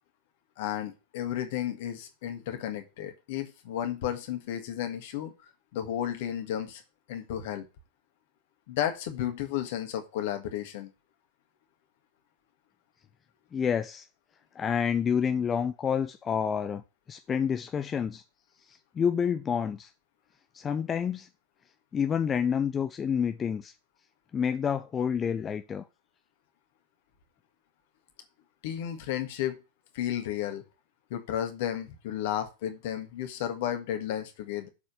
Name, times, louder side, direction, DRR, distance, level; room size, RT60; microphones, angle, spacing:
voice 1, 0.6-5.3 5.7-6.8 7.1-7.7 8.7-10.9 28.6-29.6 29.9-30.6 31.1-34.7, left 11 dB, 50° left, 1.6 m, -33 dB
voice 2, 13.5-14.1 14.5-16.8 17.1-18.2 18.6-19.9 20.5-21.3 21.9-23.7 24.3-25.9, left 7 dB, 20° left, 0.6 m, -28 dB
7.4 x 4.3 x 6.8 m
figure-of-eight pair, 90°, 0 cm